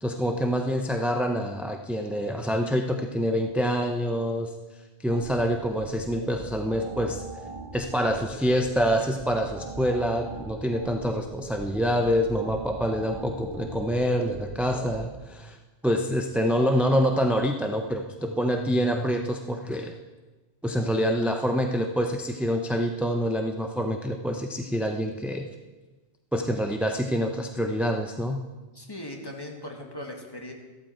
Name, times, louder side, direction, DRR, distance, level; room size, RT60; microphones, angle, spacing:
voice 1, 0.0-4.5 5.0-7.2 7.7-15.6 15.8-20.0 20.6-25.5 26.3-28.4, equal, ahead, 4 dB, 0.5 m, -26 dB
sound 1, 5.1-15.1, right 2 dB, 35° right, 2.1 m, -41 dB
voice 2, 28.7-30.5, left 1 dB, 20° left, 1 dB, 1.8 m, -39 dB
14.5 x 12.5 x 4.4 m, 1.2 s
omnidirectional pair, 1.1 m